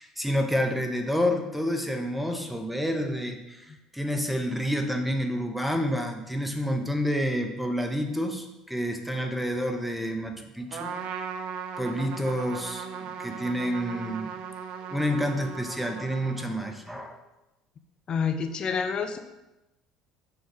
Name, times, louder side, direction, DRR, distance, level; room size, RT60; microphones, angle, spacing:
voice 1, 0.0-3.7 3.9-10.9 11.8-14.3 14.9-17.2, equal, 5° right, 4 dB, 0.7 m, -29 dB
Trumpet, 10.7-16.9, right 7 dB, 55° right, 0.4 m, -38 dB
voice 2, 18.1-19.2, left 6 dB, 40° left, 8 dB, 0.4 m, -28 dB
6.2 x 2.3 x 3.7 m, 0.96 s
hypercardioid pair, 60°, 2 cm